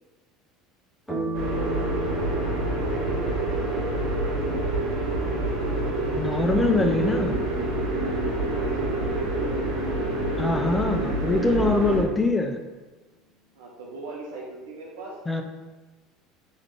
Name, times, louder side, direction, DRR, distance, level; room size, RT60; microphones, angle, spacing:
sound 1, 1.1-9.9, right 1 dB, 5° right, 1.5 m, -38 dB
sound 2, 1.3-12.0, right 2 dB, 55° right, 1.2 m, -27 dB
voice 1, 2.8-4.0 8.0-9.3 13.5-15.1, right 3 dB, 70° right, -3 dB, 0.6 m, -40 dB
voice 2, 6.2-7.4 10.4-12.6 15.3-15.4, left 2 dB, 15° left, 5 dB, 0.5 m, -23 dB
3.6 x 3.1 x 3.4 m, 1.2 s
hypercardioid pair, 70°, 0 cm